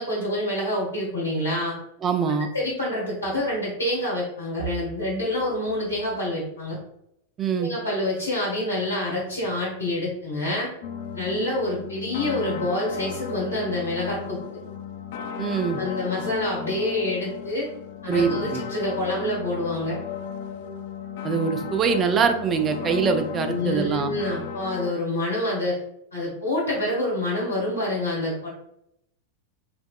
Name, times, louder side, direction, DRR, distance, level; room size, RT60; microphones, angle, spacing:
voice 1, 0.0-1.8 2.5-6.8 7.6-10.7 11.1-14.6 15.7-17.7 18.0-20.0 22.8-23.0 23.5-25.8 26.1-28.5, left 1 dB, 70° left, -6 dB, 1.5 m, -27 dB
voice 2, 2.0-2.5 7.4-7.7 15.4-15.8 18.1-18.6 21.2-24.1, right 6 dB, 25° right, 7 dB, 0.4 m, -23 dB
sound 1, 10.8-24.9, left 7 dB, 50° left, 0.3 m, -35 dB
3.4 x 3.1 x 2.3 m, 0.78 s
figure-of-eight pair, 90°, 0 cm